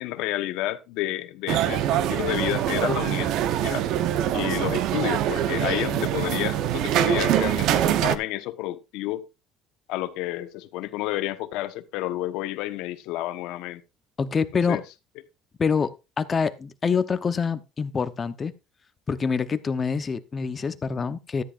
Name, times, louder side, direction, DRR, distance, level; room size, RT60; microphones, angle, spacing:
voice 1, 0.0-3.8 4.3-9.2 9.9-13.8 14.7-14.8 15.8-15.9, left 15 dB, 75° left, 1.1 m, -30 dB
sound 1, 1.5-8.2, right 11 dB, 60° right, 0.8 m, -24 dB
voice 2, 14.2-14.8 15.6-18.5 19.1-21.4, left 5 dB, 25° left, 0.8 m, -26 dB
13.5 x 10.0 x 2.5 m
cardioid pair, 145°, 0 cm